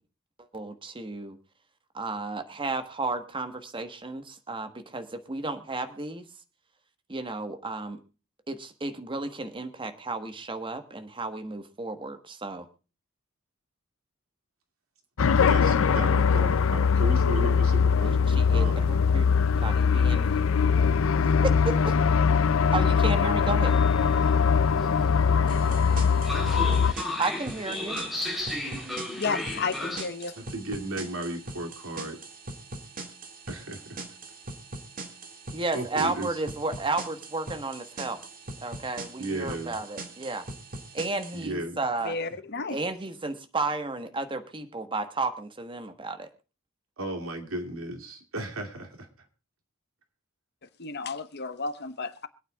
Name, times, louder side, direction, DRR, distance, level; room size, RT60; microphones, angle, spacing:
voice 1, 0.5-1.4 1.9-6.3 7.1-8.0 8.5-12.7 18.0-19.3 19.5-20.5 20.8-20.9 21.4-21.9 22.7-23.8 27.2-28.0 35.5-38.2 38.6-40.5 40.9-42.1 42.7-46.3, right 3 dB, 25° right, 1.2 m, -33 dB
sound 1, 15.2-26.9, left 6 dB, 70° left, 0.5 m, -22 dB
voice 2, 15.3-18.2 18.5-19.0 30.4-32.2 33.5-34.0 35.7-36.4 39.2-39.7 41.3-41.8 47.0-49.1, right 1 dB, 80° right, 2.5 m, -35 dB
Train, 23.6-30.0, left 1 dB, ahead, 3.3 m, -35 dB
sound 2, 25.5-41.5, right 2 dB, 45° right, 2.1 m, -42 dB
voice 3, 29.2-30.4 42.0-42.8 50.8-52.3, left 4 dB, 55° left, 1.2 m, -32 dB
25.0 x 9.2 x 2.3 m
head